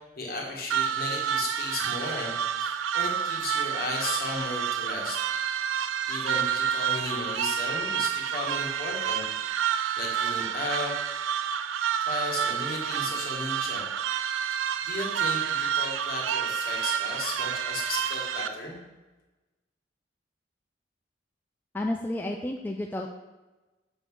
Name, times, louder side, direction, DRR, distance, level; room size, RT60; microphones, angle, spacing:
voice 1, 0.2-5.2 6.1-9.2 9.6-11.0 12.1-13.9 14.8-18.8, left 2 dB, 50° left, -1 dB, 1.6 m, -35 dB
sound 1, 0.7-18.5, right 9 dB, 90° right, 0.4 m, -29 dB
voice 2, 21.7-23.1, left 1 dB, 10° left, 1 dB, 0.3 m, -31 dB
6.9 x 3.9 x 6.2 m, 1.1 s
head